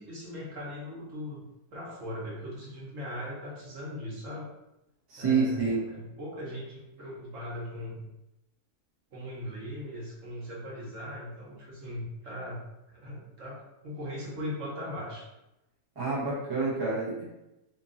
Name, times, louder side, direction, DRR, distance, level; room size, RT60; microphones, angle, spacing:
voice 1, 0.0-1.4 1.7-4.5 5.2-8.1 9.1-12.6 12.9-15.3, left 1 dB, 60° right, -5 dB, 1.2 m, -39 dB
voice 2, 5.1-5.8 16.0-17.2, right 4 dB, 20° right, -6 dB, 0.6 m, -28 dB
2.8 x 2.7 x 3.7 m, 0.92 s
omnidirectional pair, 1.7 m